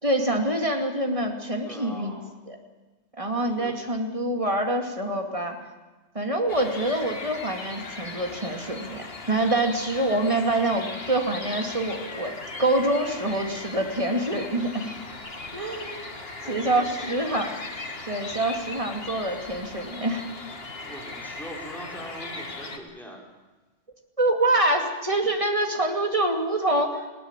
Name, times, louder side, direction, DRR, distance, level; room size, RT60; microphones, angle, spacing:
voice 1, 0.0-2.1 2.5-2.6 3.2-5.6 6.1-14.9 15.5-16.1 16.5-17.5 18.1-20.2 24.2-27.0, right 1 dB, 25° right, 3 dB, 2.5 m, -26 dB
voice 2, 1.6-2.3 3.5-3.7 16.4-17.4 20.9-23.2, equal, ahead, -2 dB, 4.6 m, -42 dB
sound 1, 6.5-22.8, left 3 dB, 55° left, 2.2 m, -38 dB
20.0 x 18.0 x 9.0 m, 1.2 s
omnidirectional pair, 1.2 m